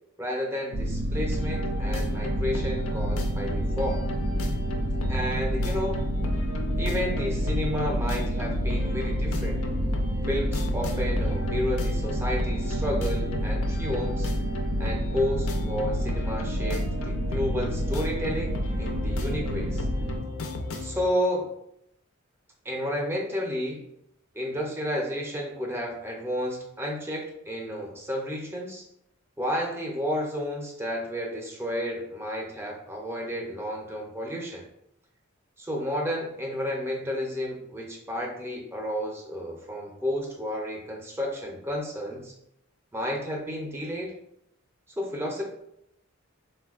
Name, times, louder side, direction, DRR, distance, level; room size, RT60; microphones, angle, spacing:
voice 1, 0.2-4.0 5.1-6.0 6.8-9.6 10.3-14.3 14.8-19.9 20.8-21.5 22.6-23.8 24.3-28.8 29.4-34.6 35.6-42.3 42.9-44.1 45.0-45.4, equal, 10° right, 0 dB, 0.5 m, -31 dB
sound 1, 0.7-20.2, equal, 75° right, 0.4 m, -28 dB
sound 2, 1.3-21.0, left 1 dB, 85° left, 0.4 m, -36 dB
4.0 x 2.2 x 2.3 m, 0.77 s
head